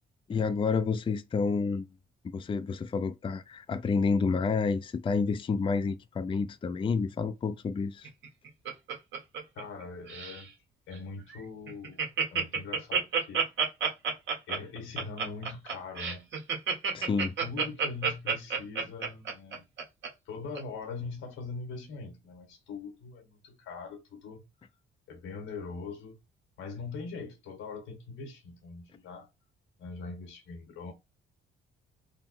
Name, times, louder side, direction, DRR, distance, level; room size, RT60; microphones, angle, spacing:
voice 1, 0.3-1.9 2.3-8.1 16.9-17.3, left 4 dB, 25° left, 0.4 m, -29 dB
Laughter, 8.0-9.8 10.1-10.4 10.9-11.0 11.3-11.4 11.7-20.1 20.6-20.7, right 6 dB, 70° right, 1.5 m, -29 dB
voice 2, 9.6-10.5 10.9-13.7 14.5-16.3 17.1-19.7 20.3-24.4 25.1-26.2 26.6-29.3 29.8-30.9, left 4 dB, 90° left, 1.6 m, -42 dB
3.8 x 2.0 x 4.2 m
cardioid pair, 90°, 20 cm